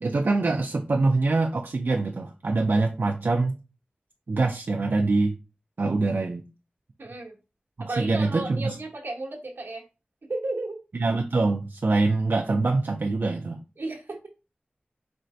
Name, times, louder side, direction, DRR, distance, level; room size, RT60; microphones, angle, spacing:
voice 1, 0.0-3.6 4.3-5.4 5.8-6.4 7.8-8.8 10.9-13.6, right 3 dB, 65° right, 2 dB, 0.4 m, -24 dB
voice 2, 7.0-7.4 7.8-9.8 10.3-10.8 13.8-14.2, right 2 dB, 90° right, 0 dB, 1.0 m, -33 dB
4.3 x 3.2 x 2.6 m, 0.30 s
wide cardioid pair, 60°, 4 cm